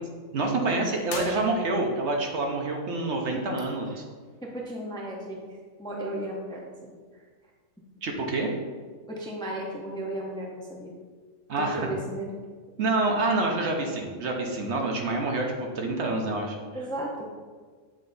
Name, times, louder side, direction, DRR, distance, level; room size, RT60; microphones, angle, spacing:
voice 1, 0.3-4.0 8.0-8.5 11.5-11.9 12.8-16.6, right 2 dB, 65° right, 1 dB, 1.1 m, -27 dB
sound 1, 1.0-2.1, left 4 dB, 65° left, 1.0 m, -39 dB
voice 2, 4.4-5.5 5.8-6.9 9.1-10.9 11.6-12.4 16.7-17.4, right 1 dB, 5° left, -1 dB, 0.5 m, -35 dB
7.8 x 3.3 x 3.9 m, 1.5 s
omnidirectional pair, 1.3 m